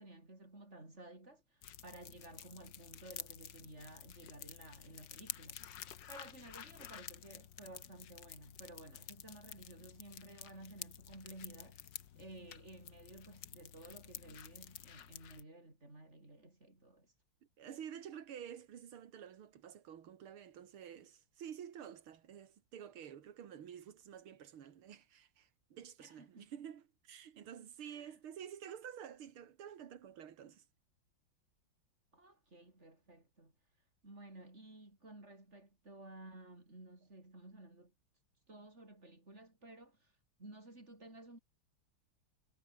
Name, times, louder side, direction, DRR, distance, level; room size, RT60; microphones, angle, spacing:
voice 1, 0.0-5.7 6.1-11.8 12.1-17.1 26.0-26.5 27.8-28.2 32.1-33.5 34.0-37.9 38.5-40.1 40.4-41.4, right 2 dB, 30° right, 6.6 m, -55 dB
sound 1, 1.6-15.4, left 10 dB, 60° left, 1.8 m, -51 dB
voice 2, 17.6-30.7, right 9 dB, 85° right, 2.4 m, -50 dB
omnidirectional pair, 2.3 m